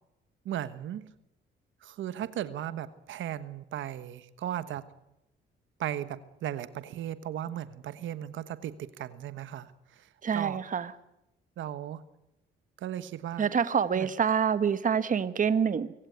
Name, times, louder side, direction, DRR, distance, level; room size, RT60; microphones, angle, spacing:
voice 1, 0.4-1.1 1.8-4.9 5.8-10.6 11.6-12.0 12.8-13.5 13.9-14.1, right 11 dB, 75° right, 13 dB, 1.3 m, -36 dB
voice 2, 10.2-10.9 13.4-15.9, right 7 dB, 40° right, 13 dB, 1.4 m, -26 dB
25.0 x 17.0 x 9.5 m, 0.88 s
cardioid pair, 90°, 20 cm